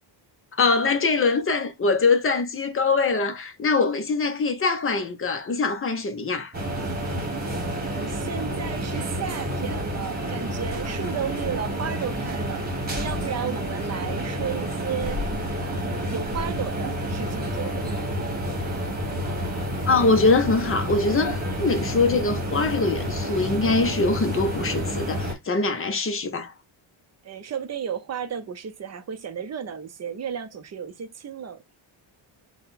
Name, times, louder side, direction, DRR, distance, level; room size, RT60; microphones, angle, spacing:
voice 1, 0.5-6.5 19.9-26.5, left 3 dB, 30° left, 0.6 m, -23 dB
sound 1, 6.5-25.3, equal, 20° right, 1.2 m, -29 dB
voice 2, 7.5-15.2 15.6-18.1 27.2-31.6, right 7 dB, 35° right, 0.5 m, -34 dB
3.8 x 2.2 x 4.0 m
cardioid pair, 130°, 49 cm